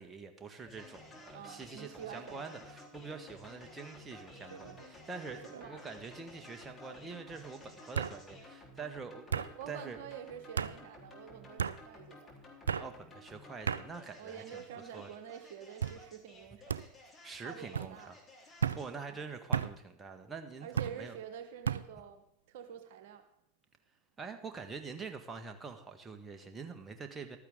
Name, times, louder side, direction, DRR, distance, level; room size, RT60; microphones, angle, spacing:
voice 1, 0.0-10.0 12.8-14.6 14.9-15.1 17.2-18.2 18.7-21.2 24.2-27.4, right 4 dB, 20° right, 5 dB, 1.6 m, -45 dB
sound 1, 0.7-19.0, left 1 dB, 20° left, 3.8 m, -54 dB
voice 2, 1.3-2.6 5.3-5.8 9.5-12.3 14.2-16.8 17.3-18.1 19.1-19.3 20.6-23.2, right 8 dB, 60° right, 6 dB, 1.3 m, -48 dB
sound 2, 4.5-4.9 5.3-5.8 6.9-7.0 7.9-8.2 9.3-9.5 10.6-10.7 11.6-11.8 12.7-12.9 13.7-13.8 14.6-15.0 15.8-16.0 16.7-16.8 17.7-17.9 18.6-18.8 19.5-19.7 20.8-21.0 21.6-21.8, right 7 dB, 80° right, 0.4 m, -34 dB
14.5 x 12.5 x 3.8 m, 0.75 s
figure-of-eight pair, 85°, 0 cm